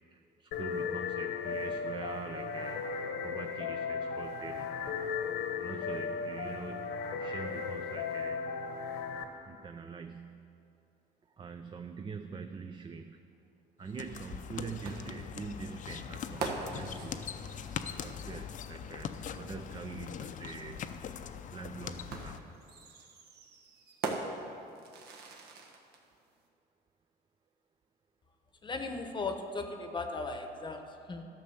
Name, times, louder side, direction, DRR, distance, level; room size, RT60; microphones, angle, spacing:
voice 1, 0.1-2.9 3.2-4.7 5.6-8.4 9.5-10.7 11.4-13.2 13.8-17.3 17.8-20.8 21.5-22.4, right 5 dB, 30° right, 7 dB, 0.5 m, -44 dB
sound 1, 0.5-9.2, left 5 dB, 80° left, 1.1 m, -36 dB
sound 2, 13.8-22.4, left 8 dB, 50° left, 0.6 m, -42 dB
sound 3, 14.8-18.5 20.0-20.1 22.1-26.0, right 4 dB, 70° right, 1.4 m, -41 dB
voice 2, 28.6-31.2, left 3 dB, 25° left, 6 dB, 0.9 m, -37 dB
12.0 x 6.4 x 7.0 m, 2.6 s
cardioid pair, 110°, 17 cm